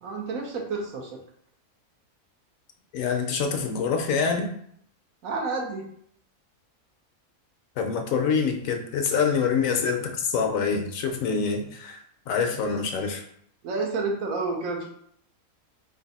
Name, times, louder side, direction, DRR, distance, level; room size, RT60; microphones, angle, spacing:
voice 1, 0.0-1.2 5.2-5.9 13.6-14.9, right 3 dB, 75° right, 1 dB, 1.2 m, -30 dB
voice 2, 2.9-4.5 7.8-12.0 12.3-13.2, left 5 dB, 70° left, 4 dB, 1.0 m, -25 dB
3.2 x 2.6 x 4.0 m, 0.66 s
omnidirectional pair, 1.5 m